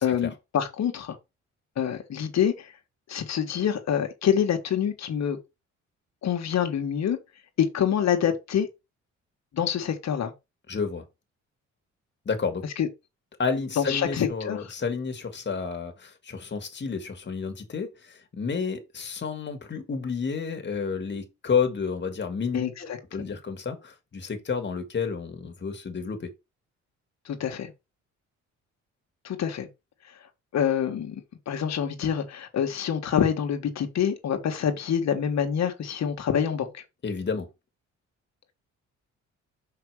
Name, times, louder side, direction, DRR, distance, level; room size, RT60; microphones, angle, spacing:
voice 1, 0.0-1.2 1.8-2.7 3.1-5.4 6.2-7.2 7.6-8.7 9.5-10.3 12.8-12.9 13.8-14.7 22.5-22.7 23.2-23.4 27.2-27.7 29.2-29.7 30.5-31.2 31.5-36.8, left 8 dB, 60° left, 1.6 m, -26 dB
voice 2, 10.7-11.0 12.3-12.6 13.4-26.3 37.0-37.5, left 5 dB, 35° left, 1.9 m, -30 dB
5.8 x 4.8 x 4.9 m
cardioid pair, 90°, 30 cm